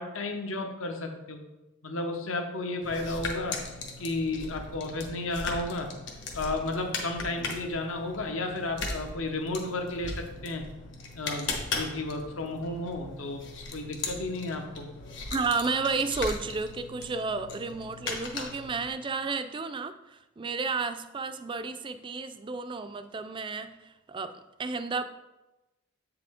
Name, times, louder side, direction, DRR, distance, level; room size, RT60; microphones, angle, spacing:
voice 1, 0.0-1.4 1.8-3.7 4.0-5.9 6.3-10.7 11.1-13.4 13.7-14.9, left 2 dB, 75° left, 4 dB, 0.9 m, -33 dB
sound 1, 2.8-18.9, left 3 dB, 60° left, 1.2 m, -38 dB
voice 2, 15.3-25.0, right 4 dB, 25° right, 10 dB, 0.3 m, -32 dB
8.0 x 4.9 x 3.6 m, 1.0 s
head